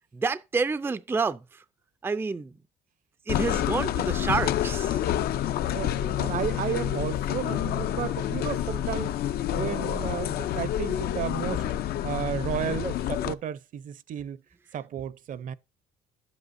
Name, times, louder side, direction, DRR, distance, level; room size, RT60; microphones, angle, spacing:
voice 1, 0.1-1.6 2.0-2.6 3.3-5.0, right 4 dB, 15° right, 0.4 m, -29 dB
sound 1, 3.3-13.3, left 11 dB, 65° left, 0.6 m, -28 dB
voice 2, 5.7-9.2 9.5-14.4 14.7-15.5, right 9 dB, 50° right, 0.7 m, -33 dB
11.0 x 8.0 x 2.6 m
cardioid pair, 110°, 17 cm